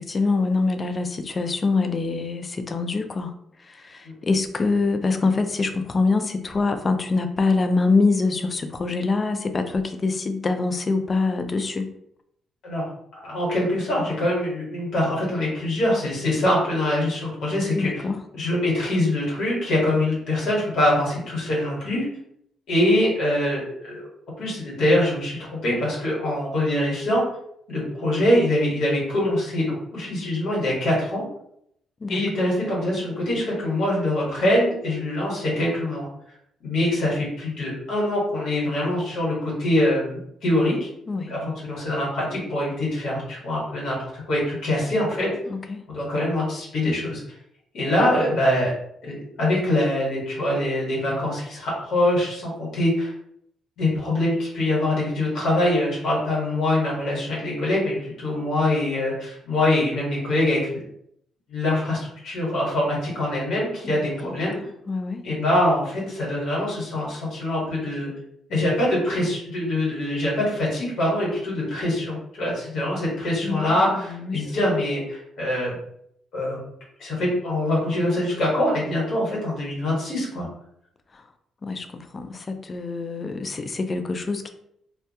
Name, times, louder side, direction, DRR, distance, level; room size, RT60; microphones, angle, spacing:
voice 1, 0.0-3.3 3.7-11.9 17.7-18.2 32.0-32.2 41.1-41.3 45.5-45.8 63.8-64.4 64.9-65.2 73.4-74.6 81.1-81.2 81.6-84.5, left 3 dB, 35° left, 7 dB, 0.3 m, -25 dB
voice 2, 13.2-18.0 18.4-22.1 22.7-24.1 24.4-27.2 27.7-31.2 32.1-36.1 36.6-40.9 41.3-45.3 45.9-47.2 47.7-48.7 49.0-53.1 53.8-60.8 61.5-64.6 65.2-68.1 68.5-75.7 76.3-76.6 77.0-80.5, left 1 dB, 75° left, -5 dB, 1.1 m, -24 dB
2.2 x 2.2 x 2.7 m, 0.73 s
cardioid pair, 90°, 0 cm